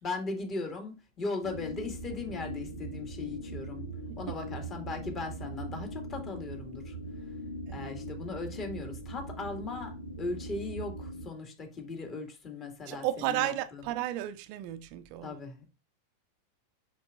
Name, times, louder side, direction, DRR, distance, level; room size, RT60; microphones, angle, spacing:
voice 1, 0.0-3.9 4.2-7.0 7.7-13.8 15.2-15.7, left 3 dB, 25° left, 2.0 m, -38 dB
sound 1, 1.4-11.3, right 1 dB, 85° left, 2.7 m, -41 dB
voice 2, 12.9-15.4, right 14 dB, 45° right, 0.5 m, -33 dB
7.0 x 5.9 x 2.4 m
figure-of-eight pair, 90°, 0 cm